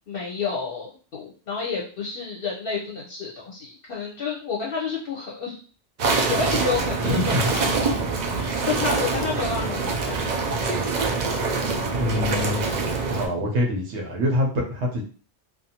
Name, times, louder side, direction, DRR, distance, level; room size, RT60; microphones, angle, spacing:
voice 1, 0.1-5.6 6.0-8.0 8.3-9.8 10.1-10.3, left 5 dB, 60° left, -3 dB, 0.8 m, -30 dB
sound 1, 6.0-13.3, right 4 dB, 55° right, 0.5 m, -25 dB
voice 2, 7.0-7.5 12.0-12.6 13.1-15.0, left 1 dB, 85° right, 0 dB, 1.0 m, -25 dB
2.5 x 2.3 x 2.8 m, 0.40 s
omnidirectional pair, 1.1 m